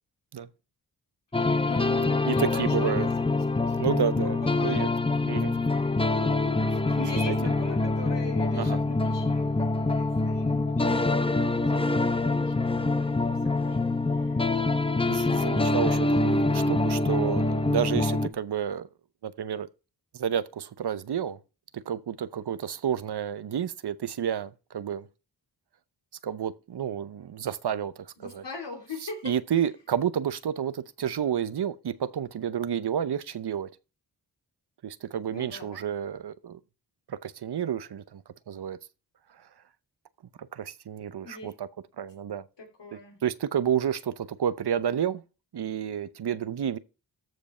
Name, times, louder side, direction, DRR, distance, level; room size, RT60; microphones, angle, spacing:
sound 1, 1.3-18.3, left 2 dB, 15° left, 0.8 m, -25 dB
voice 1, 1.6-3.8 4.2-4.9 5.5-5.7 6.1-6.2 6.8-11.3 11.7-11.8 12.3-14.5 15.3-16.2 28.2-29.3 35.3-35.8 41.2-41.5 42.6-43.2, left 3 dB, 80° left, 2.9 m, -41 dB
voice 2, 2.3-3.1 3.8-4.9 5.3-5.6 6.7-6.8 7.2-7.4 8.6-8.8 15.1-18.9 19.2-19.7 20.1-21.4 21.7-25.1 26.2-28.4 29.2-33.7 34.8-36.6 37.1-38.8 39.3-39.5 40.4-41.7 42.0-42.4 42.9-45.2 45.5-46.8, right 9 dB, 65° right, 0.8 m, -30 dB
14.0 x 5.2 x 4.3 m
cardioid pair, 50°, 42 cm